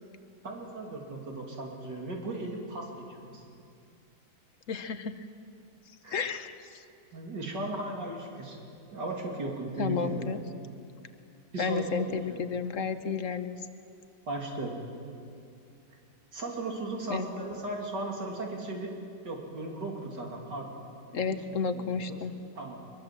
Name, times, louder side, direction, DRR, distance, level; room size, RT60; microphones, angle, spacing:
voice 1, 0.4-3.4 6.0-6.3 7.1-8.6 8.9-10.2 11.5-12.4 14.3-14.8 16.3-18.9 19.2-20.8 21.3-21.4 21.7-22.2 22.6-22.8, right 2 dB, 80° right, 0 dB, 3.7 m, -36 dB
voice 2, 4.7-5.1 6.1-6.8 9.8-10.4 11.6-13.6 17.1-17.3 21.1-22.3, left 5 dB, 55° left, 10 dB, 1.3 m, -32 dB
23.0 x 22.5 x 7.6 m, 2.4 s
omnidirectional pair, 1.8 m